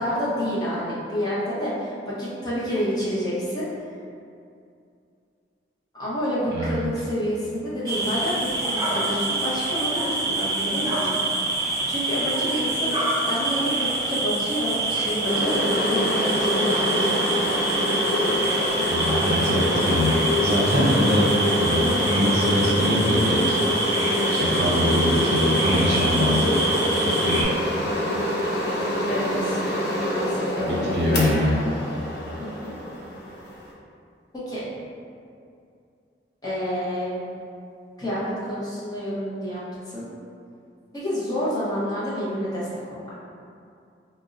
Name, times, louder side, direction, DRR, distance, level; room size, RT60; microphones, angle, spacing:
voice 1, 0.0-3.7 5.9-11.2 11.9-13.0 13.2-17.3 29.1-29.6 30.0-31.7 32.4-32.7 34.5-34.6 36.4-37.2 38.0-40.1 40.9-43.1, equal, 20° left, -10 dB, 0.6 m, -29 dB
voice 2, 6.5-6.8 18.9-21.3 21.6-23.6 24.3-26.5 27.0-27.5 30.6-31.5, equal, 65° right, -5 dB, 0.6 m, -23 dB
sound 1, 7.9-27.4, right 2 dB, 20° right, 0.4 m, -26 dB
sound 2, 15.2-33.7, left 1 dB, 65° left, 0.5 m, -25 dB
2.5 x 2.0 x 3.6 m, 2.5 s
head